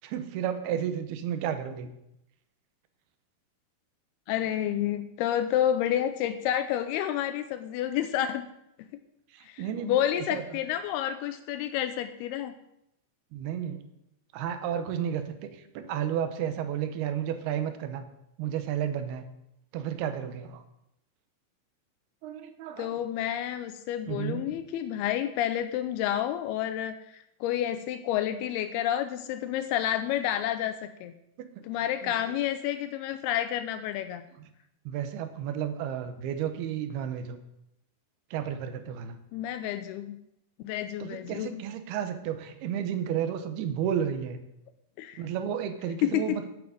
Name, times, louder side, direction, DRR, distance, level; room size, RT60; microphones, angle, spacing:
voice 1, 0.0-1.9 9.3-10.4 13.3-13.8 14.3-15.5 15.7-18.0 18.4-19.3 19.7-20.6 22.2-23.0 24.1-24.4 31.4-31.5 32.0-32.4 34.9-37.4 38.3-39.2 41.0-44.4 45.2-46.5, right 9 dB, 80° right, 9 dB, 3.0 m, -32 dB
voice 2, 4.3-8.5 9.5-12.5 22.8-26.9 27.4-31.1 31.6-34.3 39.3-40.2 40.6-41.6 45.0-45.2 46.0-46.4, left 11 dB, 85° left, 9 dB, 2.6 m, -29 dB
9.2 x 8.7 x 7.7 m, 0.83 s
omnidirectional pair, 4.5 m